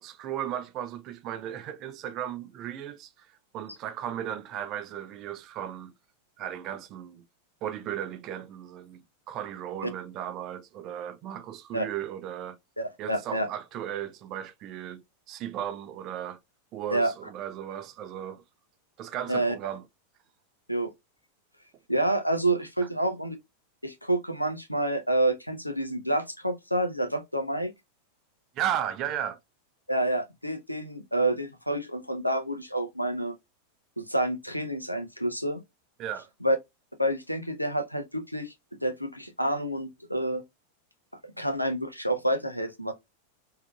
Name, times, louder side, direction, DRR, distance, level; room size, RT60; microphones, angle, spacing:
voice 1, 0.0-3.3 3.5-5.9 6.4-7.2 7.6-12.6 13.0-16.4 16.7-18.4 19.0-19.8 28.6-29.4 36.0-36.3, right 10 dB, 35° right, 0.5 m, -35 dB
voice 2, 12.8-13.5 16.9-17.1 19.3-19.5 20.7-20.9 21.9-23.4 23.8-27.7 29.9-33.4 34.0-35.6 36.4-36.6 37.0-38.5 38.8-40.4 41.4-42.9, right 1 dB, 90° left, 0.6 m, -28 dB
3.5 x 2.7 x 2.3 m
figure-of-eight pair, 90°, 0 cm